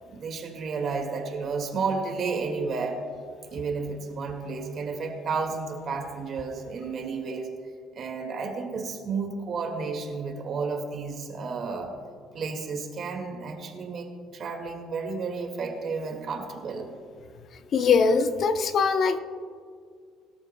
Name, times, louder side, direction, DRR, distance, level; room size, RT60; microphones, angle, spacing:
voice 1, 0.1-3.0 3.5-7.5 7.9-11.9 12.3-16.9, right 4 dB, 45° right, 3 dB, 2.0 m, -32 dB
voice 2, 17.7-19.2, left 5 dB, 45° left, 9 dB, 0.7 m, -22 dB
22.0 x 13.5 x 2.2 m, 2.1 s
cardioid pair, 140°, 0 cm